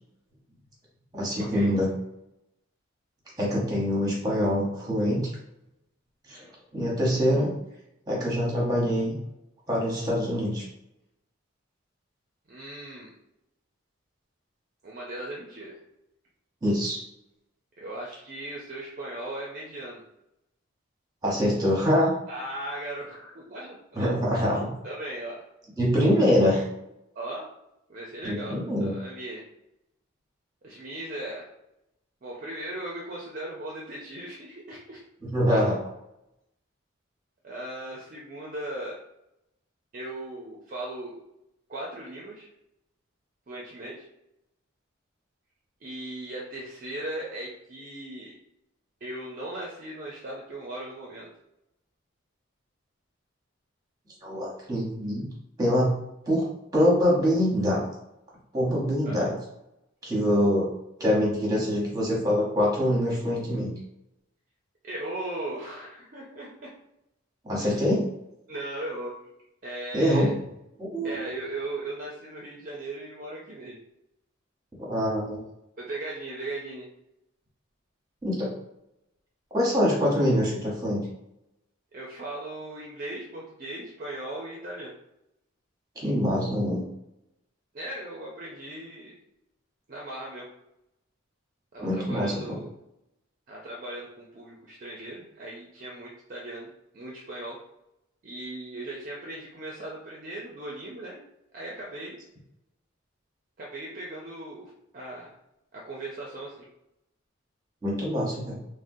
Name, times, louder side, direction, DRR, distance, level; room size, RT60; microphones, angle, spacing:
voice 1, 1.1-1.9 3.4-5.3 6.3-6.4 6.7-7.5 8.1-9.2 9.7-10.6 16.6-17.0 21.2-22.1 23.9-24.7 25.8-26.6 28.2-28.9 35.2-35.8 54.2-55.3 55.6-55.9 56.3-56.5 56.7-57.8 58.5-59.4 60.0-60.7 61.0-63.7 67.4-68.0 69.9-70.3 70.8-71.2 74.9-75.4 78.2-78.5 79.5-81.0 86.0-86.8 91.8-92.6 107.8-108.6, equal, 20° right, -4 dB, 0.9 m, -24 dB
voice 2, 12.5-13.1 14.8-15.8 17.8-20.0 22.3-24.2 24.8-25.4 27.2-27.5 27.9-29.4 30.6-31.4 32.2-35.0 37.4-39.0 39.9-41.1 41.7-42.5 43.5-44.1 45.8-48.3 49.0-51.3 59.0-59.3 64.8-66.7 67.6-67.8 68.5-69.2 69.6-70.3 71.0-73.8 75.8-76.9 81.9-84.9 87.7-89.2 89.9-90.5 91.7-92.7 93.5-96.7 96.9-97.6 98.2-101.2 101.5-102.2 103.6-105.4 105.7-106.7, right 1 dB, 40° right, -3 dB, 0.4 m, -38 dB
3.6 x 2.1 x 2.6 m, 0.84 s
head